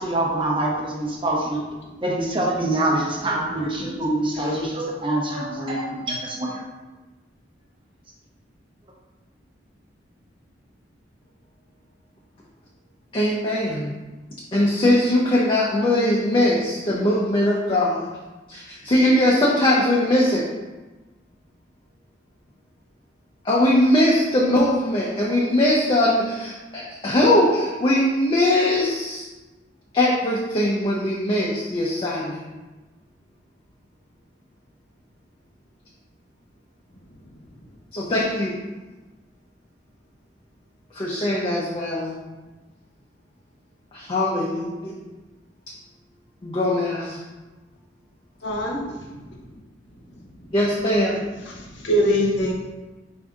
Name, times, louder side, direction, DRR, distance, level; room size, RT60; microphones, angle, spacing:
voice 1, 0.0-1.6 2.0-6.6, right 1 dB, 30° right, -2 dB, 0.8 m, -25 dB
voice 2, 13.1-13.9 14.5-18.1 18.5-20.5 23.4-29.3 29.9-32.4 37.9-38.5 40.9-42.2 43.9-44.9 46.4-47.2 50.5-51.2, left 1 dB, 30° left, -4 dB, 0.5 m, -21 dB
voice 3, 48.4-49.6 50.4-50.5 51.4-52.5, equal, 75° left, -1 dB, 0.8 m, -24 dB
4.7 x 2.6 x 3.6 m, 1.2 s
head